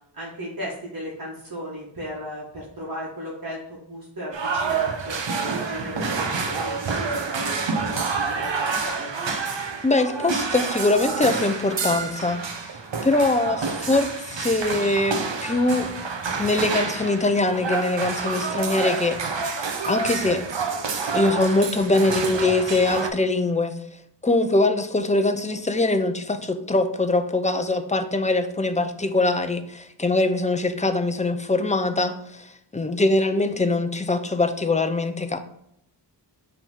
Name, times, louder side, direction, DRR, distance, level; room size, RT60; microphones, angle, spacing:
voice 1, 0.1-9.1, equal, 50° right, -5 dB, 1.7 m, -36 dB
sound 1, 4.3-23.1, right 4 dB, 80° right, 0.9 m, -28 dB
voice 2, 9.8-12.7 13.0-15.9 16.4-19.5 19.9-20.4 21.1-23.8 24.2-35.4, left 2 dB, 15° left, 8 dB, 0.6 m, -23 dB
5.9 x 3.5 x 5.4 m, 0.75 s
wide cardioid pair, 110°, 44 cm